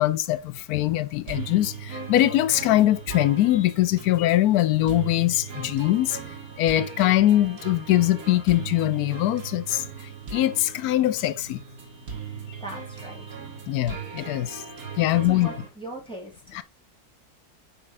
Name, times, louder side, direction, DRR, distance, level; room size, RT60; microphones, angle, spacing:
voice 1, 0.0-6.2 6.6-9.8 10.3-11.6 13.7-14.6 15.0-15.5 16.5-16.6, left 14 dB, 75° left, 1.1 m, -22 dB
sound 1, 1.3-15.7, right 6 dB, 65° right, 2.0 m, -38 dB
voice 2, 12.6-13.2 15.2-16.6, right 1 dB, 5° left, 2.7 m, -39 dB
7.5 x 4.4 x 3.5 m
omnidirectional pair, 1.6 m